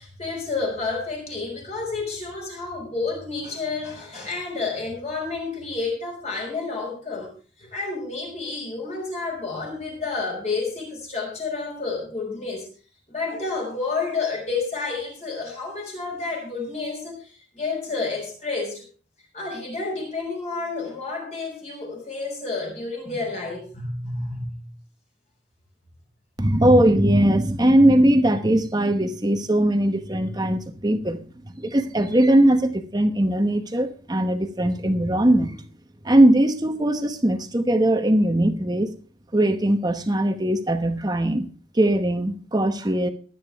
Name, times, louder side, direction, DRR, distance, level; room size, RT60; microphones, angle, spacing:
voice 1, 0.0-7.3 7.6-12.7 13.1-18.8 19.3-24.7, left 3 dB, 35° left, 5.5 m, -30 dB
voice 2, 26.4-35.6 36.0-38.9 39.3-41.5 41.7-43.1, right 1 dB, 20° right, 1.0 m, -20 dB
23.0 x 8.9 x 3.5 m
head